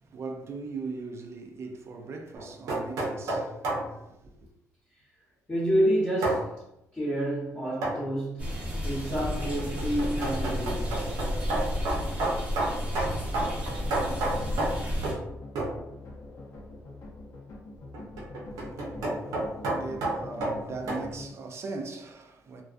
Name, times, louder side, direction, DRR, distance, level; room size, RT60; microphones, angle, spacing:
voice 1, 0.0-4.5 18.6-18.7 19.2-22.6, right 4 dB, 50° right, 0.4 m, -40 dB
sound 1, 2.3-3.9 6.2-6.4 7.8-8.1 9.4-15.3 15.6-15.8 17.9-21.1, right 2 dB, 90° right, 0.7 m, -31 dB
voice 2, 5.5-6.6 6.9-8.6 8.8-11.0, equal, 20° left, 1.0 m, -28 dB
sound 2, 8.4-15.1, equal, 20° right, 0.8 m, -32 dB
sound 3, 13.7-21.3, left 2 dB, 60° left, 0.6 m, -44 dB
2.3 x 2.2 x 2.4 m
cardioid pair, 95°, 6 cm